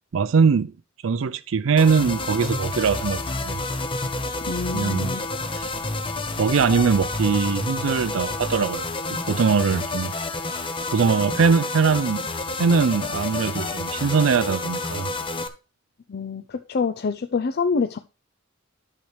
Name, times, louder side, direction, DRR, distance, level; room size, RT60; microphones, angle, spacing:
voice 1, 0.1-0.7 1.0-3.6 4.7-5.1 5.5-5.7 6.4-8.8 9.3-10.1 10.9-12.2 12.6-15.1, right 5 dB, 70° right, 0.4 m, -21 dB
sound 1, 1.8-15.5, left 3 dB, 25° left, 0.8 m, -29 dB
voice 2, 4.5-5.3 16.1-18.0, left 4 dB, 50° left, 0.5 m, -26 dB
10.5 x 6.7 x 3.3 m
head